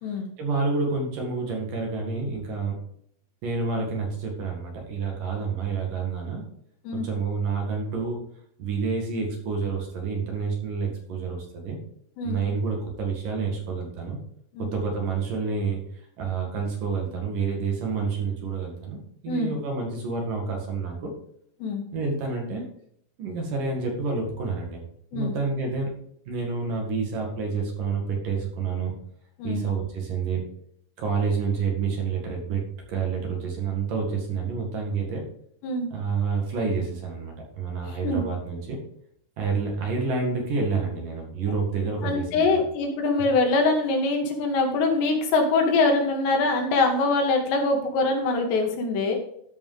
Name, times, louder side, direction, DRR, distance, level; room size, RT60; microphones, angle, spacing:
voice 1, 0.4-2.8 3.4-6.4 6.9-8.2 8.6-11.8 12.2-14.2 14.6-21.1 21.9-22.7 23.2-24.8 25.1-25.9 26.3-28.9 29.4-30.4 31.0-35.2 35.9-38.8 39.4-42.6 43.2-43.3, right 4 dB, 55° right, 0 dB, 3.4 m, -28 dB
voice 2, 37.9-38.2 42.0-49.2, left 3 dB, 85° left, 2 dB, 3.9 m, -23 dB
13.5 x 5.3 x 5.0 m, 0.70 s
omnidirectional pair, 4.8 m